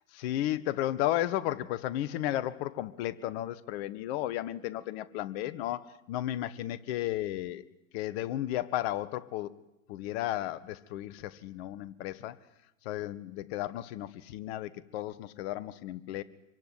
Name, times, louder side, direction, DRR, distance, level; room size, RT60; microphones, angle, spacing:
voice 1, 0.2-7.7 7.9-9.5 9.9-12.4 12.8-16.2, left 14 dB, 50° left, 16 dB, 1.6 m, -34 dB
26.0 x 23.5 x 9.5 m, 0.89 s
hypercardioid pair, 105°, 41 cm